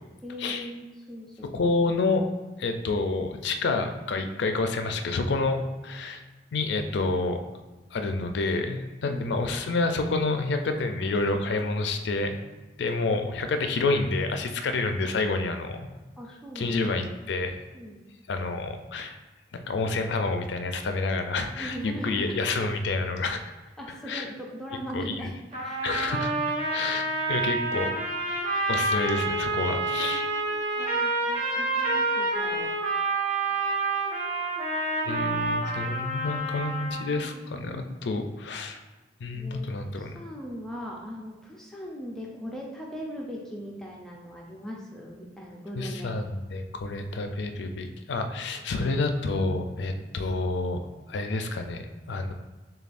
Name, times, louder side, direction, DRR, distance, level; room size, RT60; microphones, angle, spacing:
voice 1, 0.2-1.3 1.6-1.8 9.0-9.5 13.2-13.3 16.2-16.8 17.7-18.0 21.6-22.4 23.8-25.3 25.6-26.0 29.6-32.7 37.1-37.8 39.3-46.1 50.0-50.1, equal, 5° left, -2 dB, 0.4 m, -40 dB
voice 2, 1.5-2.2 2.6-6.2 6.5-7.4 7.9-12.4 12.8-15.9 16.6-17.6 18.3-19.2 19.5-23.4 24.1-24.3 24.9-25.3 25.8-26.3 26.7-28.3 28.7-30.3 35.0-38.8 39.2-40.1 45.8-50.8 51.1-52.3, left 3 dB, 65° left, 7 dB, 0.4 m, -28 dB
sound 1, 25.5-37.2, right 2 dB, 30° right, 0.9 m, -28 dB
6.6 x 2.3 x 2.5 m, 1.2 s
head